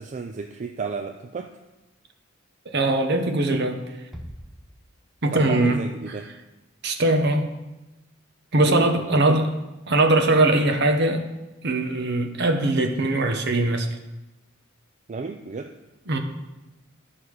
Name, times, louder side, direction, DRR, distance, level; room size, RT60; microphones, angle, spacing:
voice 1, 0.0-1.5 5.3-6.3 8.6-9.5 15.1-15.7, right 4 dB, 35° right, 6 dB, 0.4 m, -33 dB
voice 2, 2.7-3.8 5.2-5.8 6.1-6.2 6.8-7.5 8.5-9.5 9.9-11.3 11.6-13.9 16.1-16.2, right 2 dB, 55° right, 5 dB, 1.0 m, -21 dB
Bass drum, 4.1-5.5, equal, ahead, 0.8 m, -43 dB
11.5 x 5.6 x 4.8 m, 1.0 s
head